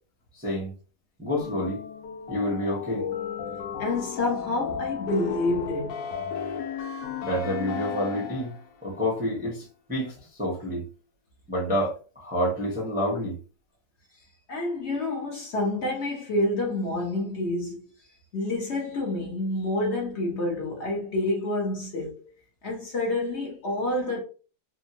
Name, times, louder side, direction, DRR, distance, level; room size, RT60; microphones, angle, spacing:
voice 1, 0.3-0.7 1.2-1.8 2.3-3.1 7.2-8.5 8.8-10.8 11.5-13.4, equal, 10° right, 0.5 m, -28 dB
sound 1, 1.4-8.7, left 7 dB, 85° left, 1.3 m, -34 dB
voice 2, 3.8-6.1 14.5-17.9 18.3-22.3 22.6-24.2, left 2 dB, 50° left, 0.9 m, -28 dB
3.5 x 2.1 x 2.7 m
omnidirectional pair, 1.8 m